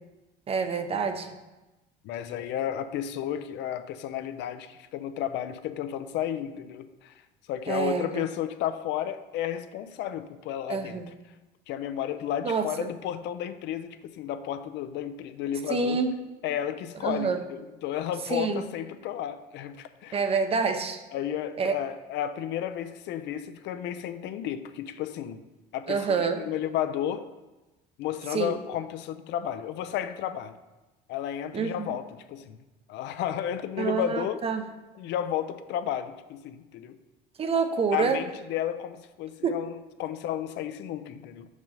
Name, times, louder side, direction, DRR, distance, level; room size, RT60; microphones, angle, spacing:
voice 1, 0.5-1.3 7.7-8.2 10.7-11.1 12.4-12.9 15.7-16.1 17.0-17.4 18.3-18.6 20.1-21.0 21.6-21.7 25.9-26.4 28.3-28.6 31.5-31.9 33.8-34.6 37.4-38.2 39.4-39.5, right 5 dB, 30° right, 7 dB, 0.6 m, -27 dB
voice 2, 2.0-7.2 7.5-11.0 11.7-16.0 16.4-20.2 21.1-25.4 25.7-27.3 28.0-30.6 31.1-32.6 32.9-34.4 35.0-37.0 37.9-41.5, left 10 dB, 60° left, 11 dB, 0.5 m, -32 dB
5.2 x 4.8 x 5.6 m, 1.1 s
cardioid pair, 120°, 20 cm